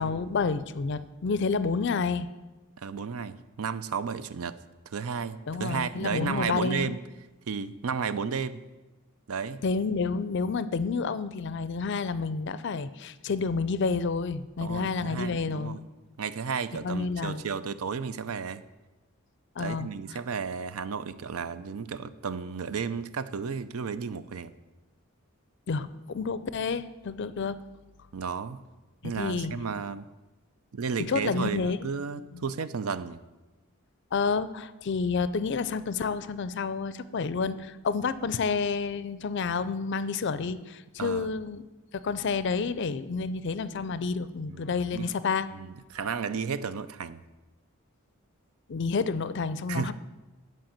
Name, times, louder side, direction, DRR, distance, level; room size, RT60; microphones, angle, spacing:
voice 1, 0.0-2.3 5.5-6.9 9.6-15.8 16.8-17.4 19.6-19.9 25.7-27.6 29.0-29.7 31.0-31.8 32.3-32.4 34.1-41.6 41.9-45.5 48.7-49.9, left 4 dB, 50° left, 15 dB, 0.4 m, -29 dB
voice 2, 2.8-4.6 4.9-7.0 7.5-8.6 9.3-9.6 14.6-15.8 16.2-18.6 19.6-24.5 28.1-28.6 29.0-30.1 30.7-33.2 41.0-41.3 44.5-45.1 45.6-47.2 49.7-49.9, right 6 dB, 80° right, 14 dB, 0.5 m, -33 dB
10.5 x 4.6 x 7.4 m, 1.1 s
head